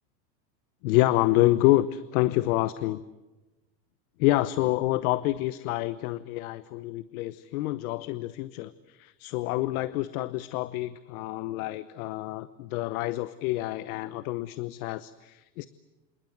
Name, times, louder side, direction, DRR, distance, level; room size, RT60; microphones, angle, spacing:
voice 1, 0.8-3.0 4.2-15.7, left 17 dB, 60° left, 15 dB, 1.0 m, -27 dB
28.0 x 25.5 x 8.1 m, 1.1 s
supercardioid pair, 135°, 50 cm